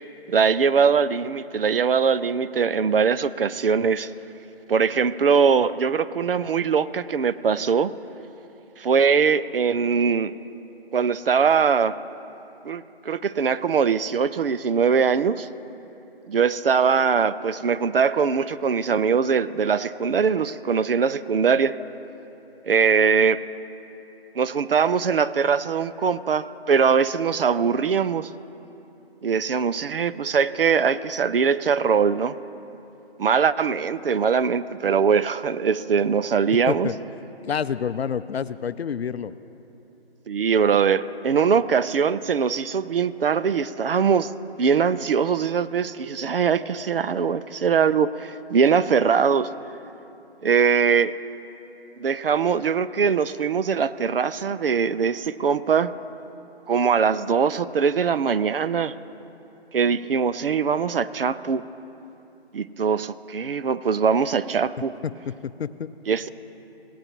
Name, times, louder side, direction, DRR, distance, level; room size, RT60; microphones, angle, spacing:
voice 1, 0.3-4.1 4.7-7.9 8.8-10.3 10.9-12.0 12.6-15.5 16.3-21.8 22.6-23.4 24.4-28.3 29.2-32.4 33.2-36.9 40.3-44.3 44.6-49.5 50.4-51.2 52.0-55.9 56.7-59.0 59.7-61.7 62.5-64.9 66.1-66.3, right 6 dB, 60° right, 14 dB, 0.5 m, -22 dB
voice 2, 37.4-39.3 65.0-65.9, left 7 dB, 75° left, 14 dB, 0.5 m, -28 dB
18.0 x 9.0 x 2.9 m, 3.0 s
figure-of-eight pair, 160°, 31 cm